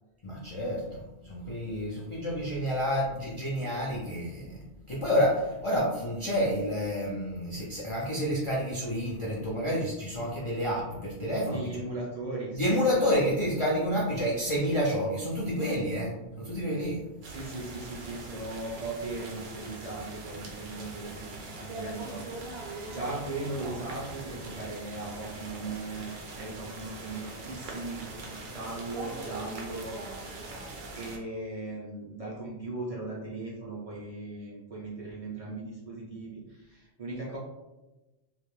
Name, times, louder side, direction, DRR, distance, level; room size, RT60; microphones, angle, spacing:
voice 1, 0.2-11.9 12.5-17.0, equal, 50° left, -5 dB, 0.3 m, -29 dB
voice 2, 11.5-12.8 17.3-22.2 22.6-30.0 30.2-30.3 30.9-37.4, right 2 dB, 45° right, -5 dB, 0.5 m, -38 dB
sound 1, 17.2-31.2, right 2 dB, 70° right, 0.8 m, -41 dB
2.4 x 2.0 x 3.0 m, 1.0 s
omnidirectional pair, 1.1 m